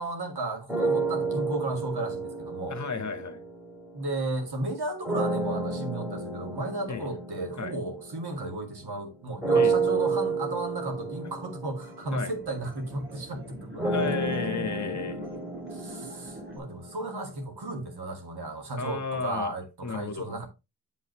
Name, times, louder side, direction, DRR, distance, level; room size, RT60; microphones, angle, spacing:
voice 1, 0.0-2.8 3.9-14.3 14.6-14.7 15.7-20.5, right 2 dB, 70° right, 2.1 m, -34 dB
sound 1, 0.7-4.2 5.0-8.8 9.4-17.4, right 3 dB, 5° right, 2.5 m, -31 dB
voice 2, 2.7-3.4 6.9-7.1 7.6-7.8 9.5-9.7 12.1-12.3 13.8-15.3 18.8-19.5 19.8-20.3, left 5 dB, 45° left, 1.3 m, -33 dB
sound 2, 11.8-16.6, right 2 dB, 30° right, 2.4 m, -43 dB
8.2 x 5.5 x 3.1 m
wide cardioid pair, 80°, 40 cm